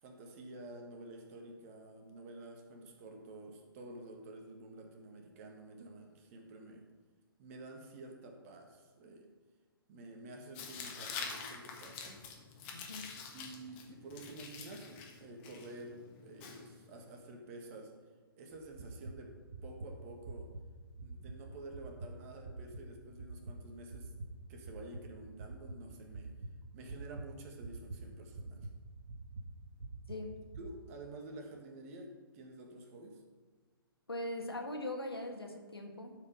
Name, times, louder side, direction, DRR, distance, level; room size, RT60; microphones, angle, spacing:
voice 1, 0.0-6.9 7.4-9.3 9.9-12.3 13.3-18.0 18.4-19.4 19.6-20.5 21.0-24.1 24.5-26.3 26.7-28.7 30.6-33.2, right 2 dB, 35° right, 3 dB, 1.7 m, -50 dB
Tearing, 10.5-17.2, left 5 dB, 30° left, 1.4 m, -47 dB
voice 2, 12.7-13.1 30.1-30.3 34.1-36.1, left 1 dB, 90° left, 3 dB, 1.6 m, -41 dB
sound 1, 18.5-30.6, right 2 dB, 60° right, 1.3 m, -47 dB
11.5 x 5.1 x 5.3 m, 1.4 s
figure-of-eight pair, 130°, 12 cm